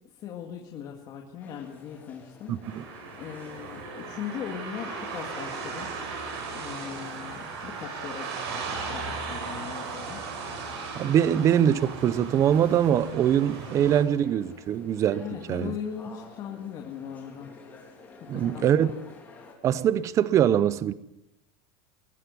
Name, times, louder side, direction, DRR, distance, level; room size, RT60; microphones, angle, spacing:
voice 1, 0.2-2.5 3.2-5.9 6.5-8.3 8.5-8.6 8.9-10.2 15.2-17.5 18.2-19.0, left 8 dB, 30° left, 2.1 m, -39 dB
sound 1, 1.4-19.5, left 3 dB, 10° left, 3.8 m, -50 dB
voice 2, 2.5-2.8 10.9-15.7 18.3-18.9 19.6-20.9, right 9 dB, 25° right, 0.7 m, -23 dB
sound 2, 2.6-14.0, right 4 dB, 80° right, 7.3 m, -37 dB
21.5 x 15.5 x 9.5 m
supercardioid pair, 180°, 13 cm